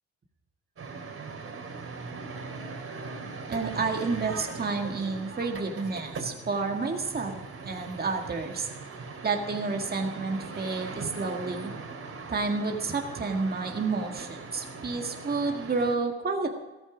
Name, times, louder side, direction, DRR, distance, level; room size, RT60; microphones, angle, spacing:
sound 1, 0.8-16.0, right 4 dB, 50° right, 3.1 m, -40 dB
voice 1, 3.5-8.7 9.2-11.7 12.3-16.5, right 4 dB, 30° right, 3 dB, 1.9 m, -30 dB
14.5 x 14.0 x 5.0 m, 1.1 s
cardioid pair, 90°, 30 cm